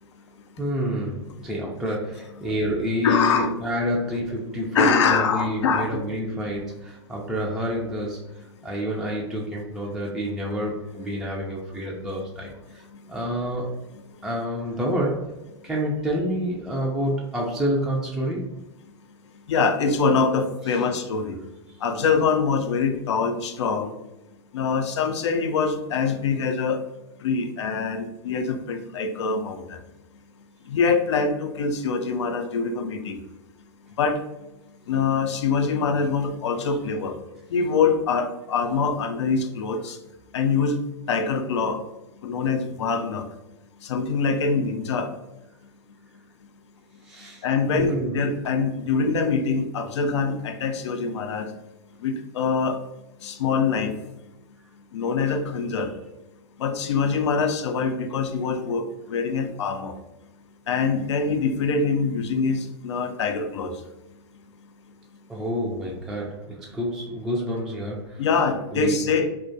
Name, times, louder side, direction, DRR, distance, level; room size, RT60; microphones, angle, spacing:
voice 1, 0.6-13.8 14.2-15.3 15.6-18.5 20.7-20.8 36.7-36.8 47.0-47.4 47.7-48.5 65.3-68.3 68.7-69.0, equal, ahead, -4 dB, 0.3 m, -28 dB
voice 2, 3.0-3.5 4.7-5.9 12.1-12.2 19.5-21.4 21.8-23.9 24.5-26.8 27.2-29.8 30.7-33.2 34.0-34.2 34.9-37.2 37.5-40.0 40.3-40.8 41.1-41.8 42.2-43.2 43.8-45.1 47.4-51.5 52.0-52.8 53.2-53.9 54.9-55.9 56.6-59.9 60.7-63.7 68.2-69.3, left 5 dB, 80° left, 6 dB, 0.4 m, -24 dB
2.2 x 2.2 x 2.6 m, 0.99 s
hypercardioid pair, 115°, 15 cm